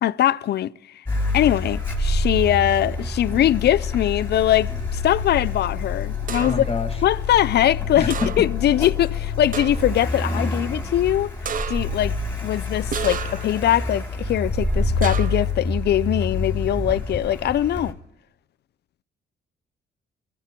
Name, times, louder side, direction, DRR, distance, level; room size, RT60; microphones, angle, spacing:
voice 1, 0.0-1.0 1.3-6.5 7.0-11.3 11.7-12.2 12.4-17.9, left 12 dB, 55° left, 0.5 m, -22 dB
Car, 1.0-17.9, left 3 dB, 10° left, 2.8 m, -27 dB
sound 1, 6.3-6.8 8.1-8.7 9.0-9.1 9.5-10.0 11.4-12.0 12.9-13.6 15.0-15.5, right 7 dB, 45° right, 0.6 m, -32 dB
voice 2, 6.4-7.0 8.0-8.5, left 3 dB, 30° left, 1.9 m, -27 dB
22.5 x 15.0 x 3.8 m
cardioid pair, 90°, 20 cm